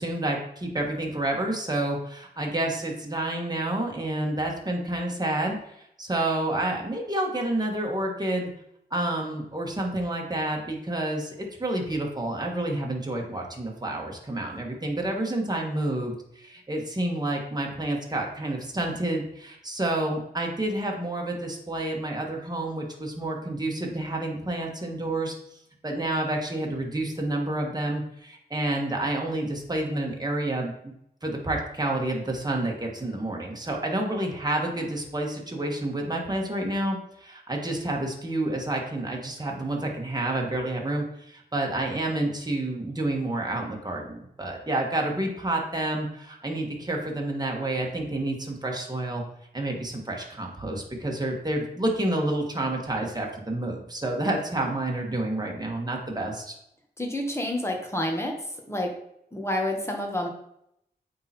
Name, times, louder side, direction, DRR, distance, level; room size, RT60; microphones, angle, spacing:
voice 1, 0.0-8.5 8.9-25.3 25.8-30.9 31.2-49.2 49.5-56.5, right 1 dB, 25° right, 0 dB, 1.5 m, -29 dB
voice 2, 57.0-58.3 58.7-58.9 59.3-60.3, left 1 dB, 15° left, 1 dB, 1.6 m, -28 dB
8.6 x 3.9 x 4.4 m, 0.76 s
wide cardioid pair, 80°, 17 cm